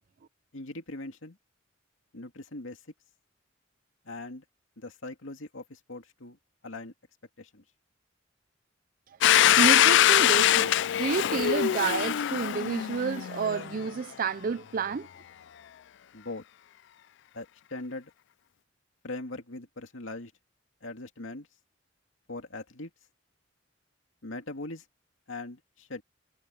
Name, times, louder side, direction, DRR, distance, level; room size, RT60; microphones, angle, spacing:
voice 1, 0.5-1.4 2.1-2.9 4.0-4.4 4.8-6.4 6.6-6.9 7.4-7.6 16.1-16.4 17.3-18.1 19.0-20.3 20.8-21.5 22.3-22.9 24.2-24.9 25.3-26.0, left 2 dB, 80° left, 2.4 m, -40 dB
Domestic sounds home sounds, 9.2-13.9, left 11 dB, 65° left, 0.4 m, -23 dB
voice 2, 9.5-15.1, right 5 dB, 45° right, 0.4 m, -30 dB
head